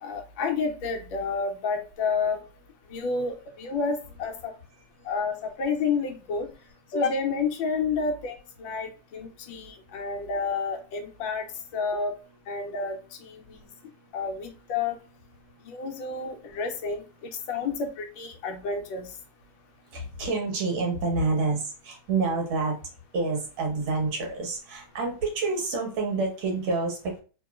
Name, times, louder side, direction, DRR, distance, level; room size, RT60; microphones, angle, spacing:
voice 1, 0.0-2.4 2.9-4.5 5.1-6.5 6.9-11.4 11.7-12.1 12.5-13.4 14.1-15.0 15.7-17.0 17.5-19.1, left 4 dB, 75° left, 4 dB, 1.3 m, -30 dB
voice 2, 19.9-22.8 23.1-27.2, right 3 dB, 85° right, 1 dB, 1.8 m, -28 dB
3.5 x 2.9 x 2.3 m, 0.35 s
omnidirectional pair, 2.2 m